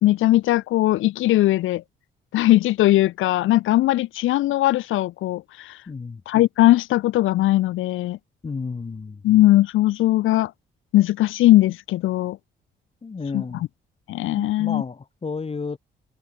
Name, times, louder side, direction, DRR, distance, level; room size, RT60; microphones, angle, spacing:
voice 1, 0.0-1.8 2.3-5.8 6.3-8.2 9.2-10.5 10.9-12.4 13.3-13.4 14.1-14.8, left 15 dB, 85° left, 1.5 m, -19 dB
voice 2, 5.9-6.2 8.4-9.2 13.0-13.7 14.4-15.8, left 4 dB, 30° left, 2.9 m, -32 dB
cardioid pair, 90°, 20 cm